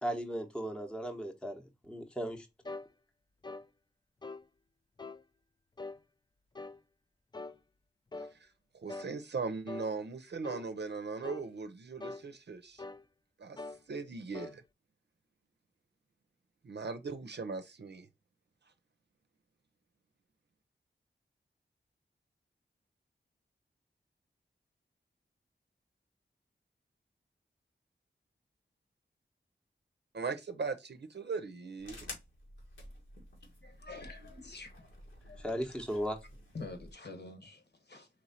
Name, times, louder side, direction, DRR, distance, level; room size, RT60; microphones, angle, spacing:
voice 1, 0.0-2.5 35.4-36.2, equal, 5° left, 0.8 m, -36 dB
sound 1, 2.7-2.9 3.4-3.7 4.2-4.5 5.0-5.2 5.8-6.0 6.6-6.8 7.3-7.6 8.1-8.3 8.9-9.1 9.7-9.9 10.4-10.7 11.2-11.5 12.0-12.3 12.8-13.1 13.6-13.8 14.3-14.6, left 3 dB, 20° left, 0.4 m, -43 dB
voice 2, 8.2-8.5 8.7-12.8 13.4-14.6 16.6-18.1 30.1-32.1, right 4 dB, 60° right, 0.6 m, -39 dB
sound 2, 31.8-36.9, left 1 dB, 85° left, 1.9 m, -51 dB
voice 3, 33.6-35.7 36.5-38.1, left 3 dB, 60° left, 1.4 m, -48 dB
4.3 x 3.1 x 4.1 m
wide cardioid pair, 65°, 19 cm